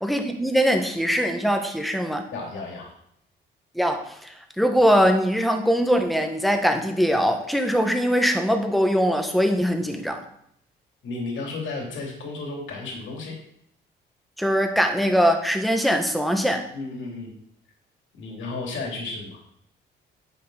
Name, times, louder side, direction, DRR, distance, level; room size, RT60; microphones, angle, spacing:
voice 1, 0.0-2.2 3.7-10.2 14.4-16.7, equal, ahead, 5 dB, 1.3 m, -22 dB
voice 2, 2.3-2.9 11.0-13.4 16.7-17.3 18.1-19.4, left 3 dB, 75° left, 0 dB, 2.7 m, -33 dB
9.5 x 5.8 x 4.0 m, 0.71 s
cardioid pair, 90°, 20 cm